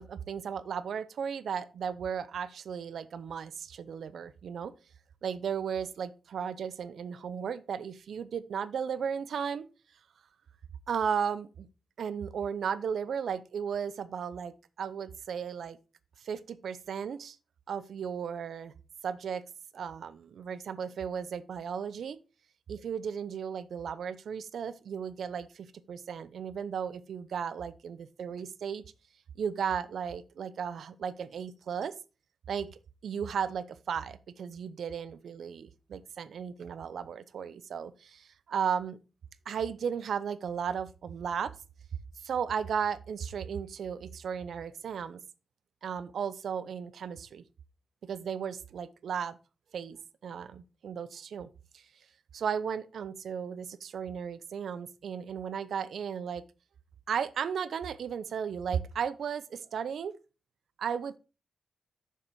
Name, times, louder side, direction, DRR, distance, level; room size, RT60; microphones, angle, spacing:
voice 1, 0.0-4.7 5.2-9.7 10.9-11.7 12.0-15.8 16.2-17.4 17.7-18.7 19.0-19.4 19.7-22.2 22.7-28.8 29.4-31.9 32.5-32.7 33.0-39.0 39.5-41.5 42.2-45.2 45.8-47.4 48.0-49.4 49.7-51.5 51.7-51.9 52.3-56.4 57.1-60.2 60.8-61.2, right 7 dB, 70° right, 15 dB, 0.6 m, -35 dB
6.8 x 6.2 x 4.5 m, 0.32 s
wide cardioid pair, 175°, 0 cm